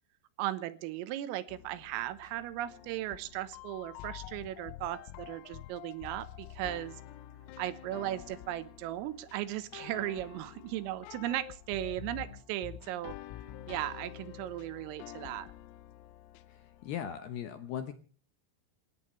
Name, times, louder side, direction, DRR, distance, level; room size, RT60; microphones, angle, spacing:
voice 1, 0.4-6.9 7.6-13.2 13.7-15.5, right 14 dB, 85° right, 14 dB, 3.6 m, -37 dB
sound 1, 1.5-17.2, left 13 dB, 90° left, 3.6 m, -48 dB
voice 2, 16.5-17.9, left 9 dB, 70° left, 8 dB, 2.5 m, -39 dB
28.0 x 14.5 x 3.2 m, 0.41 s
omnidirectional pair, 5.9 m